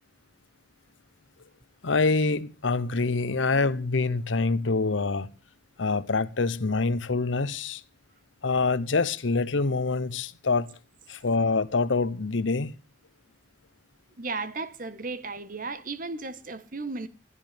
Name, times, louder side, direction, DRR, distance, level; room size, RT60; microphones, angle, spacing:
voice 1, 1.8-5.3 5.8-7.8 8.4-10.7 11.1-12.8, left 3 dB, 90° left, 0.9 m, -25 dB
voice 2, 14.2-17.1, right 3 dB, 45° right, 1.3 m, -35 dB
20.5 x 13.0 x 3.4 m
head